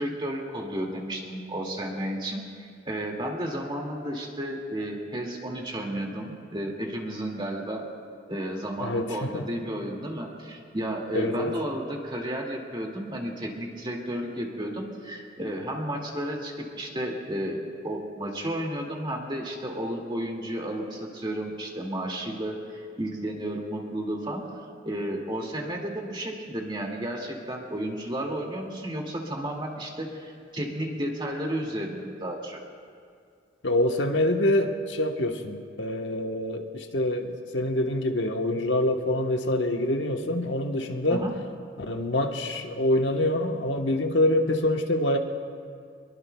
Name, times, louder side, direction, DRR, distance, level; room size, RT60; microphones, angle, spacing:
voice 1, 0.0-7.9 8.3-24.4 24.8-32.6 41.1-41.3, right 1 dB, 25° right, 0 dB, 2.2 m, -32 dB
voice 2, 8.8-9.4 11.1-11.6 33.6-41.2 41.8-45.2, left 1 dB, 85° left, 4 dB, 1.2 m, -26 dB
24.5 x 22.5 x 2.3 m, 2.3 s
head